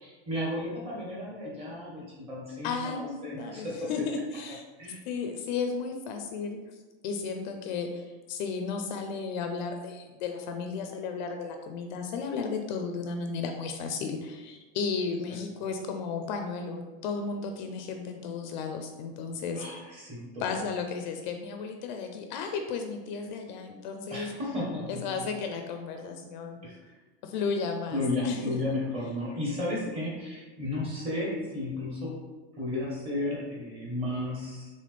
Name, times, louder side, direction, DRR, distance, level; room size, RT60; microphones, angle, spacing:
voice 1, 0.0-3.9 4.8-5.0 19.5-20.6 24.1-25.0 26.6-26.8 27.9-32.2 32.6-34.7, left 1 dB, 20° right, -4 dB, 1.0 m, -33 dB
voice 2, 2.6-4.6 5.1-6.6 7.0-19.8 20.4-24.3 24.9-26.6 27.2-28.5, left 5 dB, 50° left, 5 dB, 0.4 m, -34 dB
4.1 x 3.4 x 3.3 m, 1.2 s
supercardioid pair, 175°, 30 cm